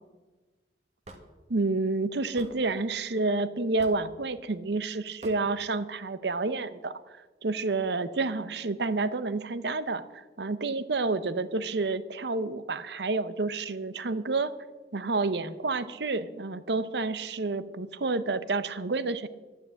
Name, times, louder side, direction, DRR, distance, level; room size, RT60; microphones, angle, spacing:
Hammer / Wood, 1.0-1.2 2.4-2.5 3.8-4.1 5.2-5.4, right 2 dB, 40° right, 1.5 m, -45 dB
voice 1, 1.5-7.0 7.4-14.5 14.9-19.3, right 3 dB, 70° right, 14 dB, 0.8 m, -29 dB
12.0 x 10.5 x 7.7 m, 1.3 s
head